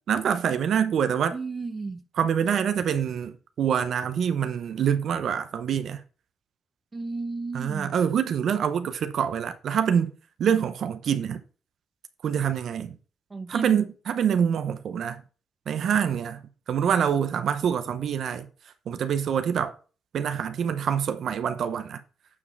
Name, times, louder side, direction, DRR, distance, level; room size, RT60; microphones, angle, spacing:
voice 1, 0.1-1.3 2.1-6.0 7.5-10.1 10.4-11.4 12.2-13.0 13.5-15.2 15.7-18.5 18.9-19.7 20.1-22.0, right 8 dB, 65° right, 0.7 m, -25 dB
voice 2, 1.3-2.0 6.9-7.9 13.3-13.8, right 3 dB, 25° right, 0.7 m, -33 dB
8.5 x 4.9 x 3.3 m
cardioid pair, 90°, 0 cm